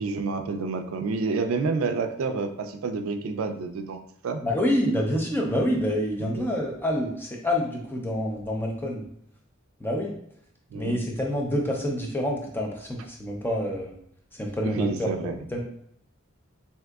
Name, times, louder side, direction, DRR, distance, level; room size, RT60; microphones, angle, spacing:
voice 1, 0.0-4.4 6.2-6.5 10.7-11.0 14.6-15.3, right 4 dB, 80° right, 7 dB, 0.3 m, -29 dB
voice 2, 4.4-9.1 9.8-10.2 10.7-13.9 14.3-15.6, left 1 dB, 10° left, 0 dB, 0.4 m, -27 dB
3.5 x 2.7 x 2.3 m, 0.68 s
head